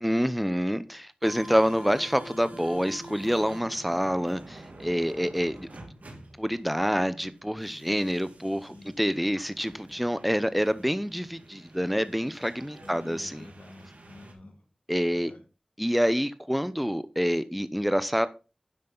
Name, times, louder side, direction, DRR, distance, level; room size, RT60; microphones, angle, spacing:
voice 1, 0.0-5.7 6.4-13.5 14.9-15.3 15.8-18.3, equal, ahead, 0.7 m, -27 dB
sound 1, 1.2-14.3, right 1 dB, 90° right, 2.0 m, -47 dB
voice 2, 12.8-14.6 15.1-15.4 16.6-16.7, left 2 dB, 80° left, 2.3 m, -49 dB
10.0 x 7.4 x 4.0 m
wide cardioid pair, 40°, 2 cm